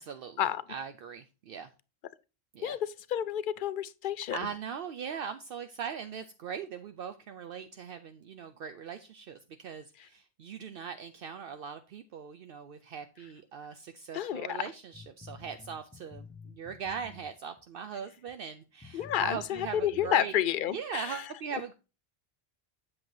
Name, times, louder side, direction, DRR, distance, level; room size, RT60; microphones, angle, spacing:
voice 1, 0.0-1.7 2.5-2.8 4.3-20.3 20.7-21.7, right 7 dB, 65° right, 0.7 m, -40 dB
voice 2, 2.6-4.4 14.1-14.6 18.9-21.2, left 10 dB, 60° left, 0.6 m, -30 dB
sound 1, 14.9-17.6 18.3-18.4 18.8-20.1, left 5 dB, 15° left, 0.7 m, -49 dB
7.7 x 7.6 x 2.7 m
omnidirectional pair, 1.1 m